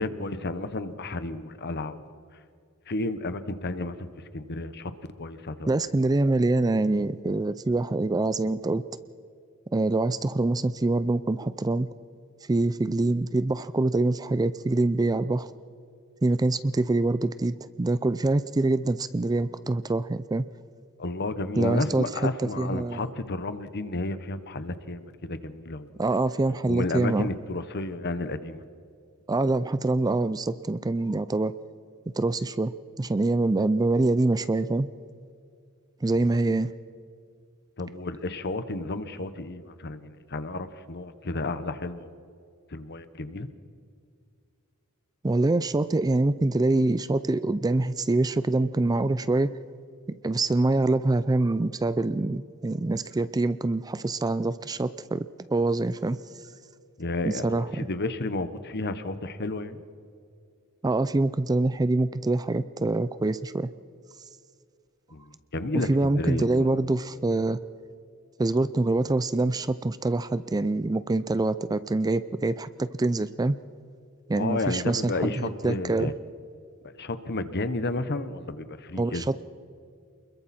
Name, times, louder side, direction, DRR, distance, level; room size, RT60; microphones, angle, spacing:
voice 1, 0.0-2.1 2.9-4.1 4.3-4.9 5.2-5.7 21.0-25.9 26.7-28.6 37.8-42.1 42.7-43.5 57.0-59.8 65.1-66.7 74.4-76.1 77.0-79.3, left 2 dB, 50° left, 12 dB, 1.1 m, -32 dB
voice 2, 5.7-8.8 9.7-11.9 12.5-15.5 16.2-20.4 21.6-22.1 22.4-23.1 26.0-27.3 29.3-31.5 32.2-32.7 33.0-34.9 36.0-36.7 45.2-49.5 50.2-56.2 57.3-57.9 60.8-63.7 65.7-67.6 68.4-73.6 74.3-76.1 79.0-79.4, right 2 dB, 15° right, 14 dB, 0.4 m, -25 dB
28.0 x 21.5 x 4.3 m, 2.3 s
head